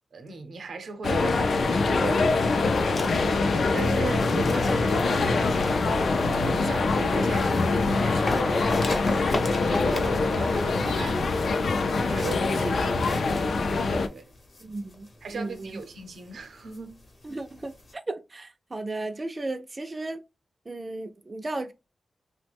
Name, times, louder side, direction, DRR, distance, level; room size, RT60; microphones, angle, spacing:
voice 1, 0.1-3.0 3.7-5.9 6.2-13.4 14.1-14.3 15.2-17.0, right 3 dB, 90° right, 0.6 m, -37 dB
sound 1, 1.0-14.1, left 3 dB, 75° left, 0.3 m, -24 dB
sound 2, 2.3-17.9, left 2 dB, 50° left, 0.8 m, -40 dB
voice 2, 14.6-15.8 17.2-17.7 18.1-20.2 20.7-21.7, right 2 dB, 30° right, 0.3 m, -35 dB
3.0 x 2.0 x 3.3 m
wide cardioid pair, 110°, 0 cm